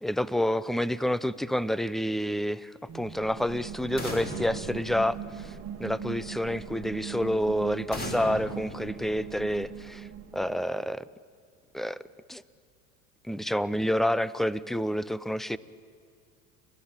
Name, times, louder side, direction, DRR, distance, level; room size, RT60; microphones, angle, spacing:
voice 1, 0.0-10.1 10.3-11.0 11.7-12.0 12.3-12.4 13.3-15.6, equal, ahead, 19 dB, 0.6 m, -29 dB
sound 1, 2.9-10.7, right 9 dB, 35° right, 1.7 m, -40 dB
sound 2, 4.0-5.8 7.9-9.7, left 1 dB, 20° left, 3.6 m, -39 dB
30.0 x 12.5 x 8.9 m, 2.3 s
hypercardioid pair, 85°, 42 cm